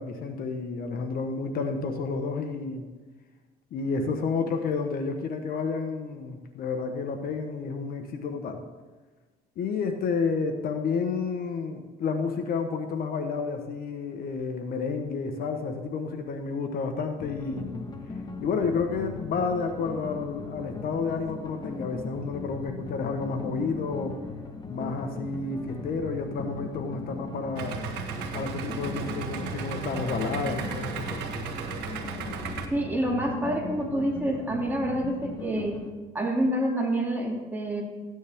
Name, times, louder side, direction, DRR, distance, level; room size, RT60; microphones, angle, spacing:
voice 1, 0.0-2.8 3.7-8.6 9.6-17.9 18.4-24.2 24.7-27.8 28.3-31.2, left 4 dB, 60° left, 6 dB, 1.2 m, -30 dB
sound 1, 17.2-35.9, left 3 dB, 25° left, 1.4 m, -39 dB
Idling, 27.6-32.7, right 6 dB, 80° right, 1.3 m, -35 dB
voice 2, 32.7-35.8 36.1-37.8, right 1 dB, 10° right, -2 dB, 2.7 m, -27 dB
14.5 x 9.6 x 3.6 m, 1.3 s
cardioid pair, 110°, 17 cm